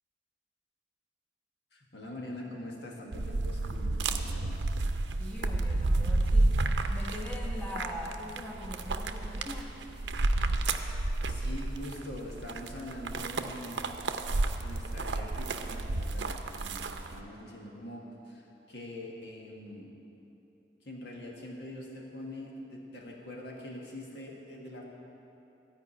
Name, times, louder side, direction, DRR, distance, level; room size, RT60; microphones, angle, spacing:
voice 1, 1.7-4.7 11.2-13.9 14.6-19.9 20.8-24.8, left 1 dB, 70° left, -1 dB, 1.7 m, -44 dB
sound 1, 3.1-17.2, right 2 dB, 80° right, 0.6 m, -31 dB
voice 2, 5.2-6.6 6.9-9.8, left 1 dB, 10° left, -3 dB, 1.2 m, -42 dB
13.5 x 5.3 x 9.0 m, 3.0 s
head